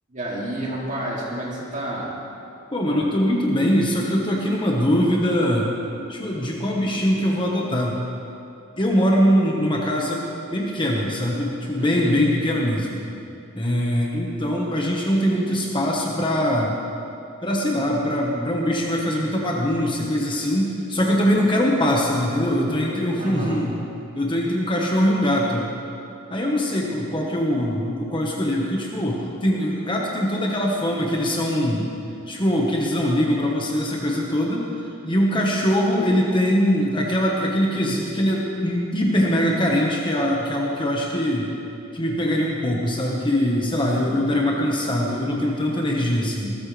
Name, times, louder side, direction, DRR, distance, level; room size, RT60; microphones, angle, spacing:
voice 1, 0.1-2.1 11.8-12.1 23.2-23.6 44.0-44.2, right 1 dB, 35° right, -4 dB, 2.8 m, -30 dB
voice 2, 2.7-5.7 6.1-8.0 8.8-10.2 10.5-13.0 13.5-16.7 17.4-23.8 24.1-25.7 26.3-31.9 32.3-34.7 35.0-41.5 41.9-46.6, equal, 25° left, -2 dB, 1.4 m, -22 dB
19.5 x 14.5 x 3.4 m, 2.6 s
head